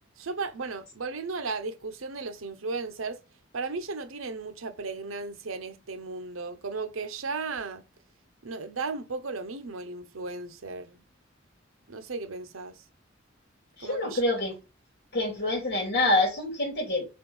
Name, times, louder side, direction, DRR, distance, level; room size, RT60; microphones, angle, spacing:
voice 1, 0.2-3.2 3.5-7.8 8.4-11.0 11.9-12.8 13.8-14.2, right 4 dB, 90° right, 0.8 m, -35 dB
voice 2, 13.8-14.5 15.1-17.1, left 2 dB, 55° left, 2.7 m, -26 dB
4.3 x 4.2 x 5.4 m
head